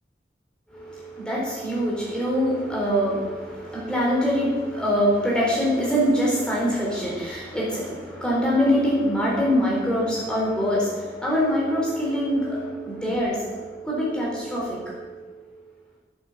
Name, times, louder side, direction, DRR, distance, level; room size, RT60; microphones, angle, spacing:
voice 1, 1.2-14.8, equal, 5° left, -5 dB, 4.1 m, -24 dB
10.5 x 8.1 x 7.4 m, 1.3 s
head